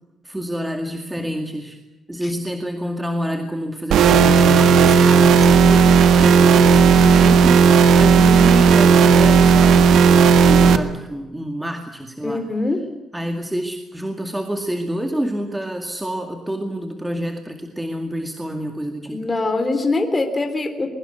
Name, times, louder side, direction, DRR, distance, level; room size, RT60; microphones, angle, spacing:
voice 1, 0.2-1.8 2.1-12.4 13.1-19.2, equal, 5° right, 4 dB, 2.2 m, -27 dB
sound 1, 3.9-10.8, right 5 dB, 85° right, 1.7 m, -12 dB
voice 2, 12.2-12.8 19.1-20.9, left 2 dB, 20° left, 5 dB, 3.4 m, -23 dB
23.0 x 22.0 x 8.1 m, 1.1 s
cardioid pair, 135°, 0 cm